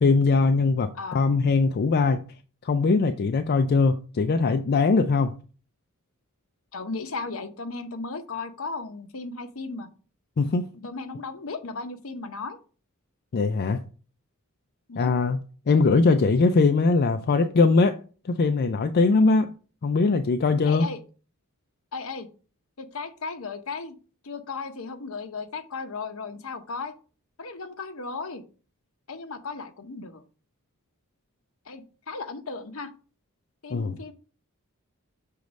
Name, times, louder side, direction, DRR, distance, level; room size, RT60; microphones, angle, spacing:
voice 1, 0.0-2.2 2.6-5.4 10.4-10.7 13.3-13.8 15.0-15.4 15.7-18.0 18.2-19.5 19.8-20.9 33.7-34.0, left 3 dB, 50° left, 0.4 m, -21 dB
voice 2, 6.7-9.9 10.8-12.6 14.9-15.1 20.6-21.0 21.9-22.3 22.8-24.0 24.2-26.9 27.4-28.4 29.1-30.2 31.7-32.9 33.6-34.1, left 4 dB, 70° left, 0.8 m, -35 dB
6.5 x 3.1 x 5.1 m
head